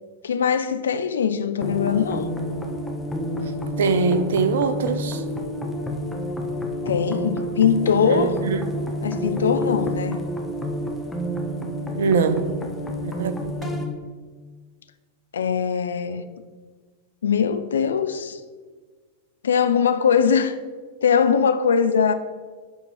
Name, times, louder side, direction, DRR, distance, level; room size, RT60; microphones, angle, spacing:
voice 1, 0.2-2.3 6.9-8.4 9.0-10.2 15.3-16.3 17.2-18.4 19.4-20.6 21.0-22.1, left 7 dB, 65° left, 0.4 m, -21 dB
sound 1, 1.6-13.9, equal, 10° left, 0.9 m, -29 dB
voice 2, 3.8-5.2 8.0-8.6 11.9-12.5 13.0-13.8, right 4 dB, 60° right, 0.5 m, -23 dB
7.9 x 4.6 x 4.2 m
figure-of-eight pair, 90°, 0 cm